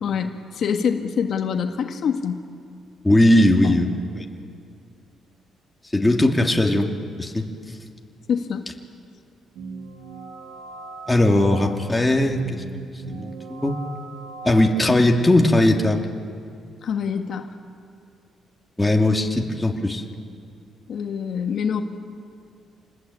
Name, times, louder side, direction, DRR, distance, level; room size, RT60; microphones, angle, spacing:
voice 1, 0.0-2.4 3.6-3.8 8.3-8.7 16.8-17.5 20.9-21.8, left 7 dB, 60° left, 4 dB, 1.8 m, -25 dB
voice 2, 3.0-3.9 5.9-7.4 11.1-12.9 13.2-13.8 14.4-16.0 18.8-20.0, left 1 dB, 10° left, 1 dB, 2.6 m, -19 dB
sound 1, 9.6-15.9, right 4 dB, 90° right, 2.2 m, -38 dB
27.5 x 20.5 x 8.6 m, 2.4 s
cardioid pair, 90°, 0 cm